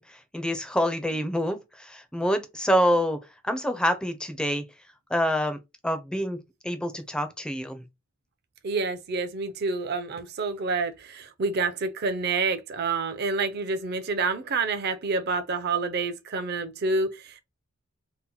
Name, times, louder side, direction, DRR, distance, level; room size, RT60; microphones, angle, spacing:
voice 1, 0.3-3.2 3.4-4.6 5.1-5.6 5.8-7.8, equal, 5° left, 0.4 m, -26 dB
voice 2, 8.6-17.4, right 4 dB, 50° right, 0.5 m, -28 dB
2.8 x 2.1 x 3.8 m
head